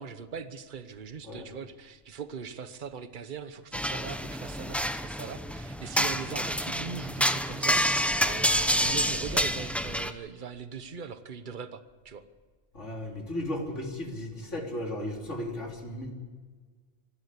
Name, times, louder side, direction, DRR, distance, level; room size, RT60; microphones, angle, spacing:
voice 1, 0.0-7.8 8.2-12.2, right 6 dB, 45° right, 11 dB, 1.2 m, -40 dB
sound 1, 3.7-10.1, equal, ahead, 0.7 m, -28 dB
voice 2, 12.7-16.1, left 1 dB, 85° left, 1 dB, 3.8 m, -35 dB
25.5 x 12.5 x 8.4 m, 1.5 s
omnidirectional pair, 1.2 m